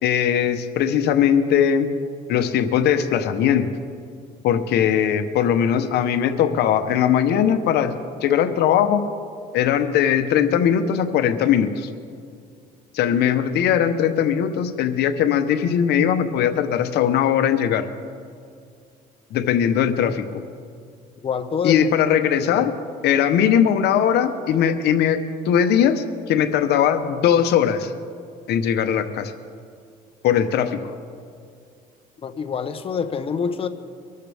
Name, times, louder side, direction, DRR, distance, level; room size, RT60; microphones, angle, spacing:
voice 1, 0.0-1.9 2.3-3.7 4.4-7.9 8.2-9.0 9.5-11.9 12.9-17.9 19.3-20.2 21.6-22.7 23.0-25.2 25.4-27.9 28.5-29.3 30.2-30.9, left 9 dB, 75° left, 9 dB, 0.9 m, -20 dB
voice 2, 21.2-21.9 22.3-22.6 32.2-33.7, left 6 dB, 35° left, 8 dB, 0.9 m, -26 dB
24.0 x 13.5 x 3.5 m, 2.3 s
cardioid pair, 110°, 17 cm